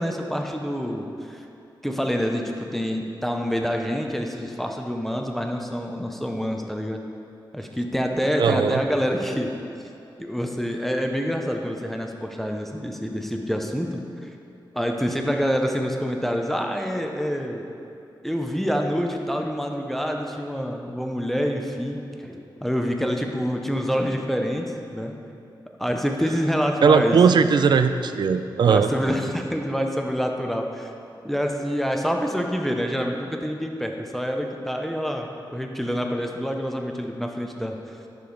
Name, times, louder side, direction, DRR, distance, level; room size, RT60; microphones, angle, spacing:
voice 1, 0.0-1.4 1.8-7.0 7.5-9.5 10.2-14.0 14.7-17.6 18.2-25.2 25.8-27.2 28.6-30.9 31.2-37.8, equal, 5° left, 2 dB, 0.5 m, -27 dB
voice 2, 8.4-8.8 26.8-28.9, right 6 dB, 65° right, 10 dB, 0.3 m, -18 dB
8.4 x 6.1 x 3.8 m, 2.6 s
wide cardioid pair, 130°, 8 cm